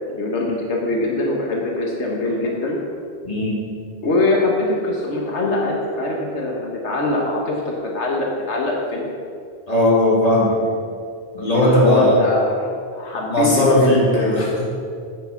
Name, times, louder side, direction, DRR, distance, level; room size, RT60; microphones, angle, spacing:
voice 1, 0.1-2.8 4.0-9.1 11.4-14.5, left 2 dB, 90° left, -1 dB, 1.7 m, -23 dB
voice 2, 3.2-3.6 9.7-10.6 11.3-12.2 13.3-14.7, left 1 dB, 35° left, -5 dB, 2.5 m, -17 dB
8.9 x 8.6 x 5.9 m, 2.3 s
omnidirectional pair, 1.1 m